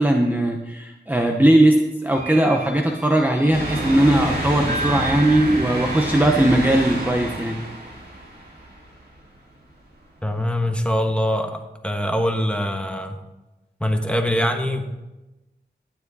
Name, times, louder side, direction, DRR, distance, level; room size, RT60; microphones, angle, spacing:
voice 1, 0.0-7.6, right 1 dB, 10° right, 2 dB, 0.9 m, -19 dB
sound 1, 2.1-7.3, right 4 dB, 45° right, 1.5 m, -40 dB
sound 2, 3.5-9.1 9.6-9.7 11.0-11.1, right 1 dB, 65° right, 4.4 m, -28 dB
Piano, 4.7-6.8, right 2 dB, 25° left, 2.0 m, -33 dB
voice 2, 10.2-13.2 13.8-14.9, equal, 5° left, 4 dB, 1.4 m, -23 dB
12.0 x 9.9 x 4.1 m, 1.0 s
wide cardioid pair, 75°, 18 cm